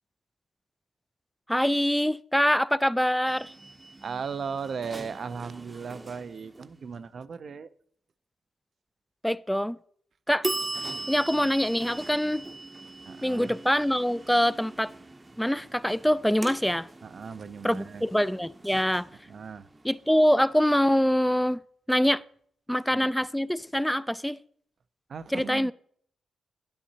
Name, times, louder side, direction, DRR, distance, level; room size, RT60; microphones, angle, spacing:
voice 1, 1.5-3.5 9.2-9.8 10.3-10.5 11.1-12.5 13.2-14.9 15.4-16.9 17.6-19.1 19.8-21.6 21.9-22.2 22.7-24.4 25.3-25.7, equal, 5° left, 0.3 m, -24 dB
sound 1, 3.3-7.0 10.4-21.1, right 2 dB, 25° right, 0.7 m, -40 dB
voice 2, 4.0-7.7 13.1-13.5 17.0-18.0 19.3-19.7 22.9-23.1 25.1-25.7, right 6 dB, 60° right, 0.5 m, -37 dB
10.5 x 8.6 x 2.8 m
supercardioid pair, 45°, 0 cm